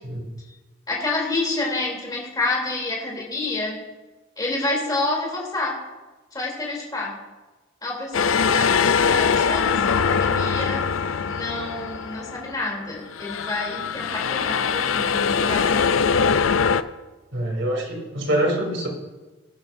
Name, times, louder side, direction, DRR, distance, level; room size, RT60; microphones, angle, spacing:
voice 1, 0.9-3.8 4.4-5.8 6.3-7.1 7.8-10.8 11.3-16.2, left 2 dB, 20° left, -3 dB, 3.2 m, -28 dB
sound 1, 8.1-12.7 13.1-16.8, left 6 dB, 85° left, 0.5 m, -22 dB
voice 2, 17.3-18.9, right 1 dB, 70° right, 0 dB, 3.5 m, -25 dB
20.0 x 11.0 x 2.7 m, 1.2 s
head